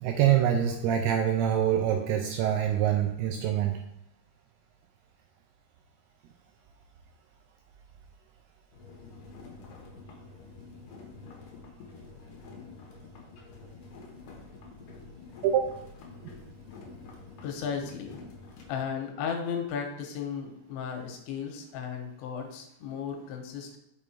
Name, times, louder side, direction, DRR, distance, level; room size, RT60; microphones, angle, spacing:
voice 1, 0.0-3.8 15.4-15.8, right 10 dB, 85° right, 3 dB, 2.3 m, -25 dB
sound 1, 8.7-18.8, left 4 dB, 70° left, 2.3 m, -48 dB
voice 2, 17.4-18.2 18.7-23.8, left 7 dB, 90° left, 3 dB, 3.3 m, -35 dB
6.2 x 5.4 x 4.3 m, 0.82 s
omnidirectional pair, 5.1 m